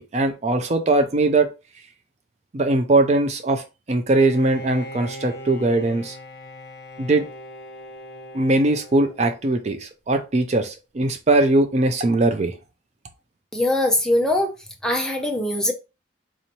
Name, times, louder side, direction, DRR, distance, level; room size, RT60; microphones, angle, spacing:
voice 1, 0.0-1.5 2.5-6.2 7.0-7.3 8.3-12.5, right 2 dB, 40° right, 0.4 m, -20 dB
Bowed string instrument, 4.1-9.7, equal, 60° left, 0.9 m, -40 dB
voice 2, 13.5-14.5 14.8-15.7, left 1 dB, 5° left, 0.6 m, -21 dB
4.2 x 2.8 x 2.9 m
head